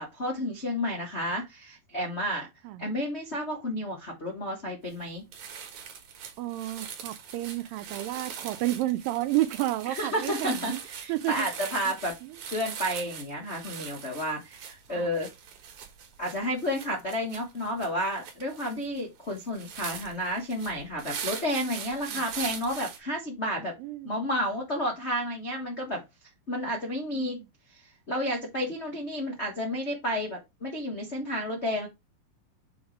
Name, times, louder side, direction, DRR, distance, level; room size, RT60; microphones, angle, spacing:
voice 1, 0.0-2.5 2.8-5.3 10.0-12.1 12.5-15.3 16.2-23.7 24.0-26.0 26.5-27.4 28.1-31.9, equal, 65° left, 0.6 m, -31 dB
sound 1, 4.9-5.0 5.3-23.0, right 7 dB, 60° right, 2.3 m, -41 dB
voice 2, 6.4-10.8 11.1-11.5 12.2-12.4 14.9-15.1 22.1-22.2 23.8-24.2 27.1-27.5, right 15 dB, 80° right, 2.2 m, -31 dB
7.1 x 3.1 x 5.1 m
omnidirectional pair, 4.2 m